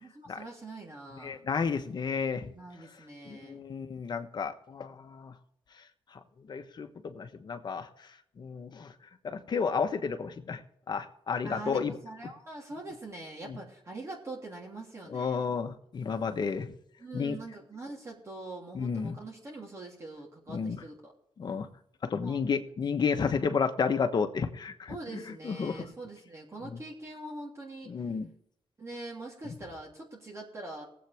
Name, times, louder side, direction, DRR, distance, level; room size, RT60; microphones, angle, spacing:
voice 1, 0.0-1.4 2.5-3.6 11.4-15.6 17.0-21.1 22.2-22.4 23.1-23.4 24.9-27.9 28.8-30.9, right 2 dB, 30° right, -2 dB, 3.3 m, -43 dB
voice 2, 1.2-2.5 3.3-5.3 6.5-7.9 8.4-8.9 9.2-10.6 10.9-11.9 13.5-13.6 15.1-16.7 17.1-17.4 18.7-19.1 20.5-20.8 21.4-21.7 22.0-24.9 25.4-25.8 27.9-28.3, left 5 dB, 45° left, 7 dB, 1.2 m, -31 dB
20.0 x 8.1 x 3.6 m, 0.74 s
cardioid pair, 105°, 10 cm